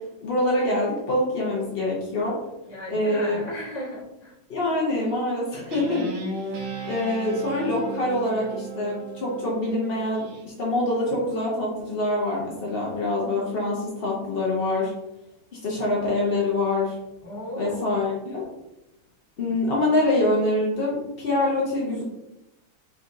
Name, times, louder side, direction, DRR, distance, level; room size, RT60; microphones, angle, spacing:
voice 1, 0.2-2.3 2.9-3.4 4.5-6.1 6.9-14.9 15.6-16.9 17.6-18.4 19.4-22.0, left 2 dB, 65° left, -4 dB, 0.5 m, -25 dB
voice 2, 2.7-4.3 17.2-18.0, left 1 dB, 25° left, -7 dB, 1.3 m, -36 dB
Guitar, 5.7-10.4, right 3 dB, 65° right, 1.4 m, -36 dB
4.2 x 3.7 x 2.6 m, 0.92 s
omnidirectional pair, 2.2 m